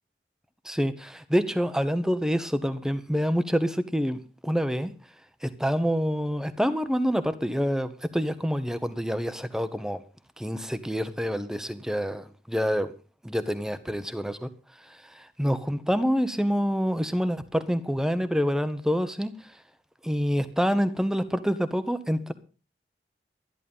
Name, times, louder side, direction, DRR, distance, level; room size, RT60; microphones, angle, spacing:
voice 1, 0.6-4.9 5.4-10.0 10.4-12.9 13.2-14.5 14.8-19.6 20.0-22.3, equal, 5° right, 0.9 m, -27 dB
12.5 x 11.5 x 5.5 m
head